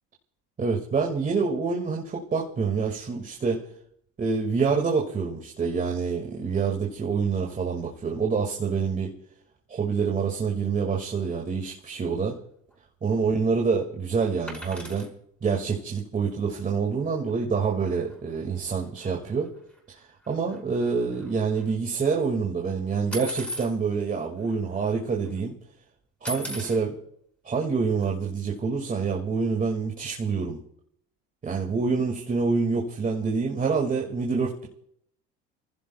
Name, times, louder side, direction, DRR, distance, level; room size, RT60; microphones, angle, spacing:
voice 1, 0.6-3.6 4.2-9.1 9.7-12.4 13.0-15.1 15.4-19.5 19.9-25.5 26.2-27.0 27.4-30.6 31.4-34.7, right 5 dB, 25° right, 0 dB, 2.2 m, -26 dB
sound 1, 14.5-15.1 17.3-17.4 17.6-17.8 18.1-18.2 19.0-19.1 19.6-21.7 23.1-23.7 24.5-24.6 24.8-25.3 26.2-26.8 28.0-28.1, equal, 5° left, 5.7 m, -37 dB
29.5 x 15.5 x 2.3 m, 0.70 s
supercardioid pair, 105°, 30 cm